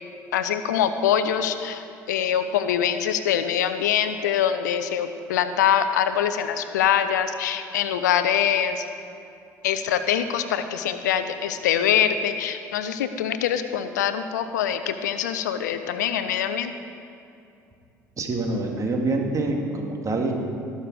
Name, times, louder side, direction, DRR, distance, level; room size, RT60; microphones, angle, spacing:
voice 1, 0.3-8.8 9.6-16.7, left 9 dB, 80° left, 10 dB, 0.6 m, -24 dB
voice 2, 18.2-20.3, right 2 dB, 35° right, 1 dB, 2.1 m, -26 dB
18.5 x 6.7 x 4.8 m, 2.6 s
hypercardioid pair, 60°, 9 cm